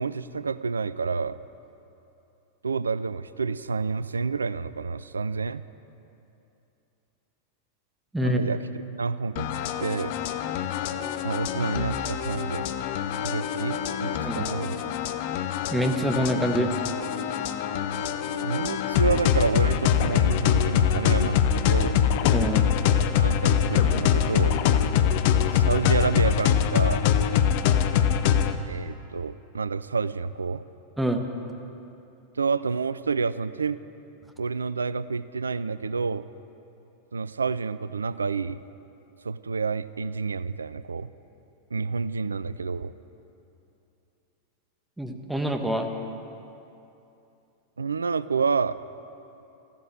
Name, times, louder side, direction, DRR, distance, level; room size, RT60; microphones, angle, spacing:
voice 1, 0.0-1.4 2.6-5.6 8.2-8.7 9.0-10.1 11.2-12.6 13.2-14.9 18.4-22.0 23.2-24.6 25.5-27.0 28.7-30.6 32.4-33.8 34.4-36.3 37.1-38.6 39.2-41.1 41.7-42.9 47.8-48.8, right 4 dB, 75° right, 16 dB, 0.4 m, -29 dB
sound 1, 9.4-28.6, left 9 dB, 50° left, 0.7 m, -24 dB
voice 2, 15.7-16.7 22.3-22.6 31.0-31.2 45.0-45.9, equal, 5° right, 4 dB, 1.4 m, -25 dB
14.0 x 12.0 x 7.5 m, 2.8 s
figure-of-eight pair, 90°, 0 cm